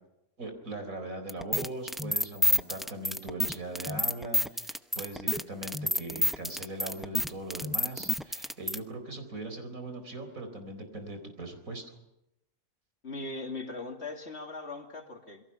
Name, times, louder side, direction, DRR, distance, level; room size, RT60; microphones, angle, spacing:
voice 1, 0.4-11.8, right 2 dB, 85° right, 6 dB, 4.6 m, -40 dB
sound 1, 1.3-8.8, left 1 dB, ahead, 0.5 m, -29 dB
voice 2, 13.0-15.4, left 3 dB, 55° left, 4 dB, 2.8 m, -39 dB
28.0 x 22.5 x 5.8 m, 0.87 s
omnidirectional pair, 1.4 m